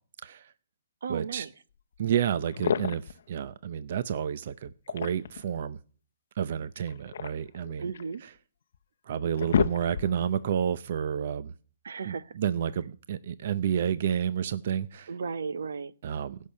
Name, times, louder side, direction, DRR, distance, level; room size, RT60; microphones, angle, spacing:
voice 1, 0.2-0.5 1.1-1.5 2.0-5.8 6.4-7.9 8.2-8.3 9.1-11.5 12.1-15.1 16.0-16.4, right 8 dB, 45° right, 0.6 m, -30 dB
voice 2, 1.0-1.5 7.8-8.2 11.8-12.3 15.1-15.9, right 5 dB, 75° right, 1.0 m, -35 dB
sound 1, 2.0-2.1 2.5-3.2 4.6-5.5 6.8-8.1 8.7-8.8 9.2-10.3, left 7 dB, 60° left, 0.7 m, -30 dB
16.0 x 6.5 x 8.6 m
hypercardioid pair, 165°, 0 cm